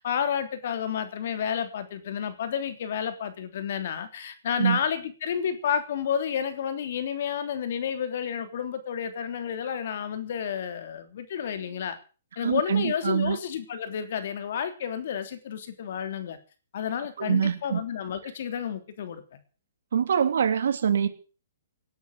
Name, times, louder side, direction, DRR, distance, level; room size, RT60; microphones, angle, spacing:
voice 1, 0.0-12.0 12.4-16.4 16.7-19.4, left 8 dB, 55° left, 9 dB, 3.3 m, -31 dB
voice 2, 12.4-13.4 17.2-17.8 19.9-21.1, right 7 dB, 75° right, 9 dB, 2.9 m, -24 dB
18.5 x 9.4 x 7.3 m, 0.37 s
hypercardioid pair, 155°, 0 cm